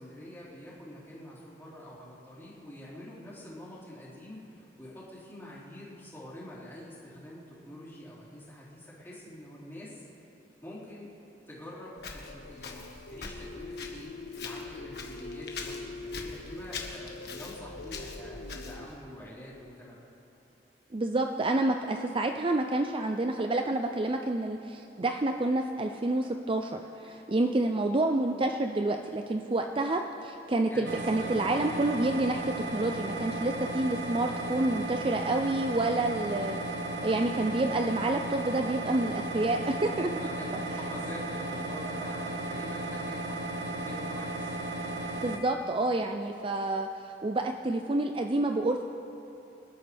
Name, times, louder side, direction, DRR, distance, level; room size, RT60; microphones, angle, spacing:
voice 1, 0.0-10.1 10.6-11.1 11.5-20.0 30.7-32.1 40.2-44.7, equal, 15° left, -9 dB, 4.0 m, -46 dB
sound 1, 11.7-18.9, left 3 dB, 85° left, 0.6 m, -44 dB
Walk footsteps, 12.0-19.0, left 4 dB, 65° left, 1.5 m, -43 dB
voice 2, 20.9-32.4 32.7-36.6 37.0-40.1 45.1-46.9 47.2-48.8, right 2 dB, 30° right, 5 dB, 0.5 m, -28 dB
sound 2, 30.8-45.4, right 2 dB, 80° right, 1.1 m, -35 dB
26.5 x 12.5 x 3.4 m, 2.8 s
head